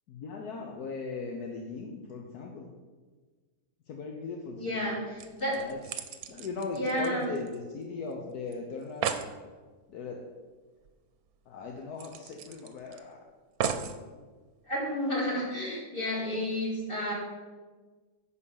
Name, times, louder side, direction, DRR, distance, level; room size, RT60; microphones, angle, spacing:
voice 1, 0.1-2.7 3.9-5.0 5.6-5.8 6.3-9.1 9.9-10.2 11.5-13.2, left 4 dB, 75° left, 1 dB, 1.4 m, -38 dB
voice 2, 4.6-5.6 6.8-7.3 14.6-17.1, equal, 35° left, -6 dB, 3.7 m, -31 dB
sound 1, 4.8-4.9 5.2-7.8 8.1-8.2 8.5-8.6 8.8-9.3 10.8-10.9 11.3-11.4 12.0-13.0 13.6-14.0 14.7-14.8, right 7 dB, 70° right, 1.1 m, -35 dB
10.0 x 4.7 x 7.1 m, 1.4 s
omnidirectional pair, 1.7 m